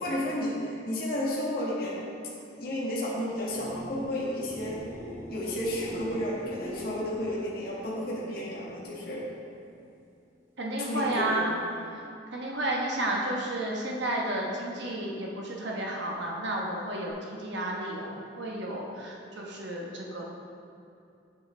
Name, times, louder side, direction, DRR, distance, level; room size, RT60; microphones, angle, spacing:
voice 1, 0.0-2.1 2.5-4.9 5.3-9.2 10.8-11.5, left 1 dB, 50° left, -6 dB, 1.5 m, -32 dB
sound 1, 3.3-9.1 9.5-10.0 17.1-17.2, equal, 15° right, 1.0 m, -43 dB
voice 2, 10.6-11.5 11.9-20.2, right 1 dB, 65° right, -2 dB, 1.1 m, -32 dB
7.8 x 7.4 x 3.4 m, 2.7 s
head